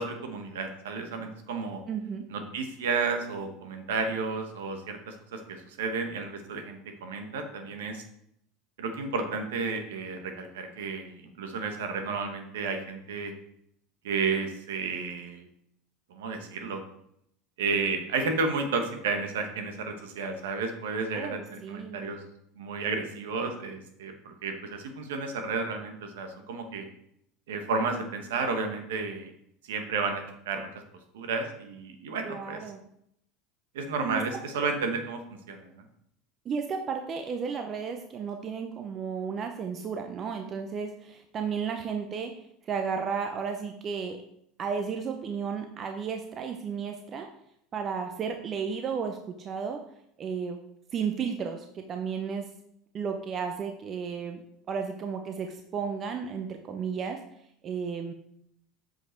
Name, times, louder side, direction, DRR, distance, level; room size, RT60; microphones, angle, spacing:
voice 1, 0.0-1.8 2.3-8.0 8.8-13.3 14.0-15.5 16.1-16.8 17.6-22.2 22.6-26.9 27.5-29.3 29.6-30.7 31.1-32.6 33.7-35.2 35.5-35.8, right 4 dB, 80° right, 5 dB, 1.2 m, -32 dB
voice 2, 1.9-2.3 21.1-22.1 32.2-32.8 34.1-34.2 36.5-42.3 42.7-44.2 44.6-47.3 47.7-49.8 50.2-50.6 50.9-52.4 52.9-54.4 54.7-57.2 57.6-58.1, right 6 dB, 40° right, 5 dB, 0.8 m, -33 dB
7.7 x 5.3 x 4.5 m, 0.74 s
hypercardioid pair, 90°, 0 cm